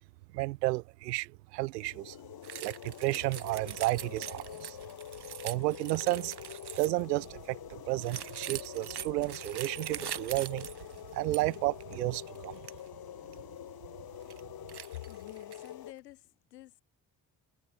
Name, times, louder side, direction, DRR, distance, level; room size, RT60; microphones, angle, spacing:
voice 1, 0.3-2.2 2.6-4.8 5.4-6.4 6.8-10.7 11.1-12.6, right 21 dB, 85° right, 0.6 m, -32 dB
sound 1, 1.7-15.9, left 11 dB, 50° left, 1.3 m, -46 dB
sound 2, 2.4-7.1 8.0-11.6 11.8-12.0 12.3-12.8 13.3-13.4 14.0-14.4 14.7-15.7, right 10 dB, 55° right, 3.2 m, -43 dB
voice 2, 14.9-16.8, left 15 dB, 85° left, 2.3 m, -48 dB
figure-of-eight pair, 40°, 48 cm